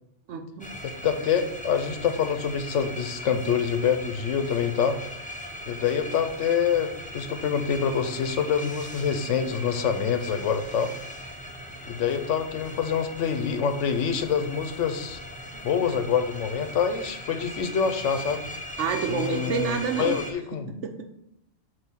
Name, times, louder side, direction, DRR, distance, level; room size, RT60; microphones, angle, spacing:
voice 1, 0.3-0.8 18.8-20.2 20.5-21.0, right 6 dB, 75° right, 5 dB, 1.1 m, -29 dB
sound 1, 0.6-20.3, left 1 dB, 10° left, 0.4 m, -39 dB
voice 2, 0.8-5.0 5.7-10.9 11.9-15.2 15.6-18.4 19.1-20.7, left 7 dB, 85° left, 8 dB, 1.0 m, -26 dB
7.7 x 2.8 x 5.6 m, 0.81 s
omnidirectional pair, 1.2 m